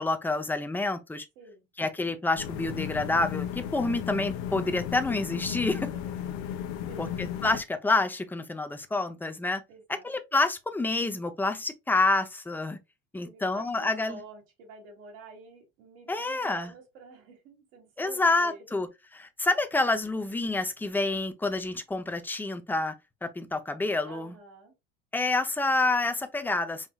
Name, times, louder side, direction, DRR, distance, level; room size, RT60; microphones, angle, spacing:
voice 1, 0.0-1.3 1.8-5.9 7.0-9.6 9.9-12.8 13.1-14.2 16.1-16.7 18.0-22.9 23.2-24.3 25.1-26.9, left 2 dB, 5° left, 0.6 m, -28 dB
sound 1, 2.4-7.6, left 9 dB, 75° left, 0.9 m, -35 dB
voice 2, 9.7-10.1 13.2-18.6 24.1-24.7, right 4 dB, 80° right, 2.5 m, -48 dB
5.6 x 3.0 x 2.3 m
supercardioid pair, 120°, 31 cm